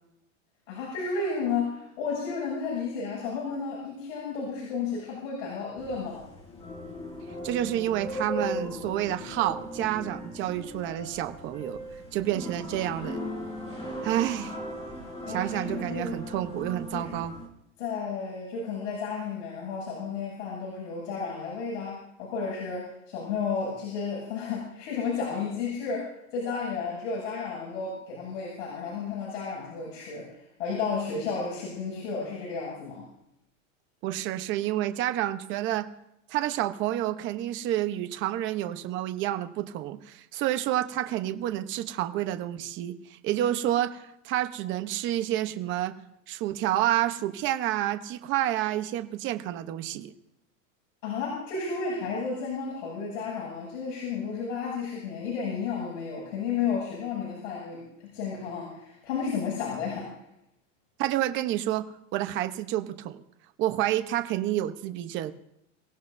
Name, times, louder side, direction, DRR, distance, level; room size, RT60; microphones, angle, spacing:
voice 1, 0.7-6.2 15.3-16.1 16.9-17.1 17.8-33.0 51.0-60.1, left 5 dB, 70° left, -4 dB, 7.8 m, -32 dB
sound 1, 5.8-17.5, equal, 15° left, 4.2 m, -38 dB
voice 2, 7.4-11.8 12.1-13.2 14.0-14.6 15.3-17.3 34.0-35.9 36.3-46.0 46.3-50.1 61.0-63.2 63.6-65.3, right 13 dB, 30° right, 9 dB, 0.9 m, -29 dB
28.5 x 16.5 x 2.7 m, 0.81 s
supercardioid pair, 160°, 38 cm